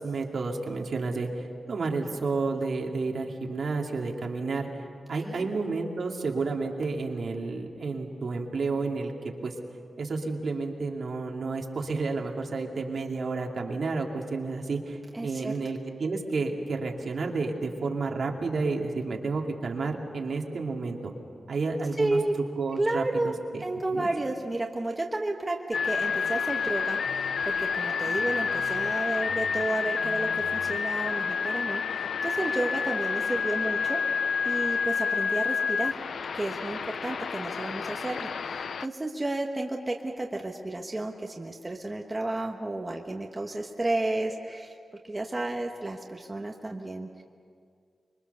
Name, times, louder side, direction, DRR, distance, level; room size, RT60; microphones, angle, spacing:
voice 1, 0.0-4.7 5.1-9.1 9.4-9.5 10.0-21.1 21.5-22.2 22.6-23.6 23.9-24.1, right 3 dB, 60° right, 1 dB, 2.4 m, -31 dB
voice 2, 15.1-15.5 22.0-22.3 22.7-23.3 23.6-34.0 34.4-36.0 36.3-44.7 45.1-47.2, right 2 dB, 20° right, 1 dB, 1.2 m, -32 dB
sound 1, 25.7-38.9, left 6 dB, 75° left, 0.5 m, -29 dB
25.0 x 23.5 x 6.8 m, 2.2 s
wide cardioid pair, 145°, 0 cm